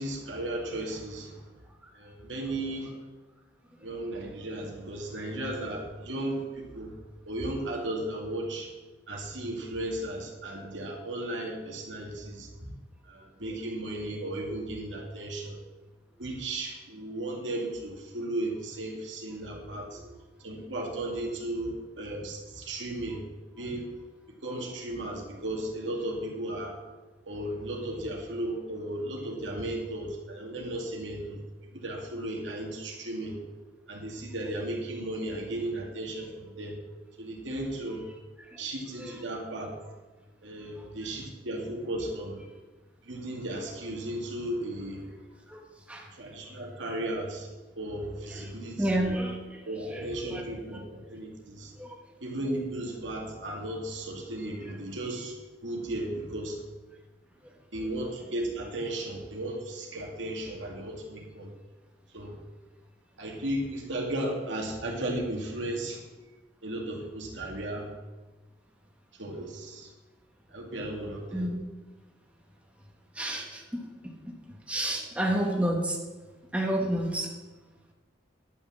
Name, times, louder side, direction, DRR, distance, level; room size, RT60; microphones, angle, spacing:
voice 1, 0.0-1.4 2.0-2.9 3.8-6.9 7.3-8.7 9.1-12.5 13.1-15.6 16.2-20.0 20.4-23.2 23.6-23.9 24.4-26.8 27.3-31.4 31.7-33.4 33.9-36.7 37.2-38.0 38.6-39.7 40.4-42.4 43.1-45.0 46.2-47.5 47.8-48.9 49.7-50.8 51.1-51.7 52.2-55.3 55.6-56.6 57.7-61.5 62.1-62.4 63.2-66.0 66.6-67.9 69.2-69.9 70.5-71.5, right 1 dB, 85° right, 0 dB, 2.3 m, -35 dB
voice 2, 19.8-20.1 28.0-28.1 39.0-39.2 41.0-41.1 45.5-45.6 45.9-46.1 48.3-48.5 48.8-50.4 51.8-52.0 54.6-54.7 71.3-71.6 73.1-74.1 74.7-76.0 76.5-77.3, right 1 dB, 5° right, 0 dB, 1.3 m, -30 dB
10.5 x 6.2 x 7.4 m, 1.2 s
head